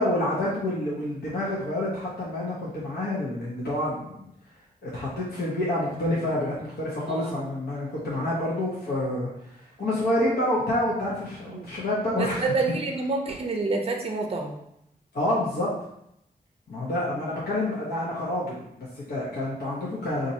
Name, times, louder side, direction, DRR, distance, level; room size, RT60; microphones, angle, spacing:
voice 1, 0.0-4.3 4.8-9.5 9.8-12.5 15.1-15.7 16.7-20.3, left 1 dB, 75° left, -7 dB, 0.9 m, -28 dB
voice 2, 7.1-7.4 11.5-11.7 12.2-14.5, right 3 dB, 40° right, 2 dB, 0.5 m, -28 dB
2.6 x 2.6 x 4.1 m, 0.78 s
wide cardioid pair, 170°, 16 cm